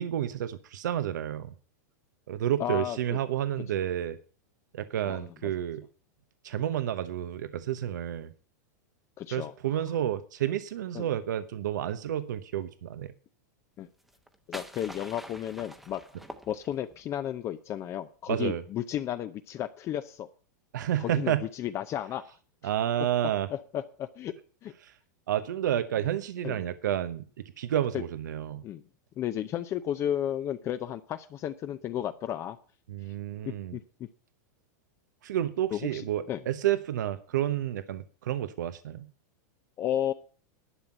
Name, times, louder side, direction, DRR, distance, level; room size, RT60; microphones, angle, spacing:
voice 1, 0.0-1.5 2.3-4.2 4.7-5.9 6.4-8.3 9.3-13.1 18.3-18.6 20.7-21.4 22.6-23.5 24.8-24.9 25.3-28.6 32.9-33.8 35.2-39.1, right 11 dB, 85° right, 12 dB, 0.9 m, -30 dB
voice 2, 2.6-3.2 5.0-5.5 9.2-9.5 10.9-11.1 13.8-13.9 14.5-16.0 16.5-20.3 21.0-22.4 23.5-24.3 24.6-24.7 26.4-26.6 27.9-28.0 28.6-28.8 29.2-32.6 33.5-34.1 35.7-36.4 39.8-40.1, left 11 dB, 30° left, 10 dB, 0.6 m, -33 dB
sound 1, 14.0-17.0, equal, ahead, 0.9 m, -46 dB
11.5 x 5.9 x 8.8 m, 0.40 s
supercardioid pair, 140°, 10 cm